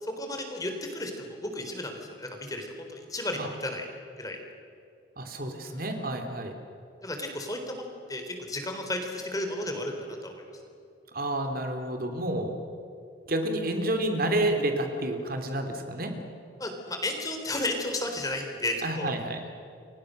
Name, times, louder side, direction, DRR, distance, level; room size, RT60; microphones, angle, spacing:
voice 1, 0.0-3.9 4.2-4.4 5.6-5.8 7.0-10.4 16.6-19.1, left 1 dB, 20° left, 3 dB, 3.9 m, -33 dB
voice 2, 5.2-6.5 11.1-12.5 13.3-16.1 18.8-19.4, right 1 dB, 50° right, 5 dB, 3.1 m, -29 dB
29.5 x 24.0 x 6.7 m, 2.5 s
head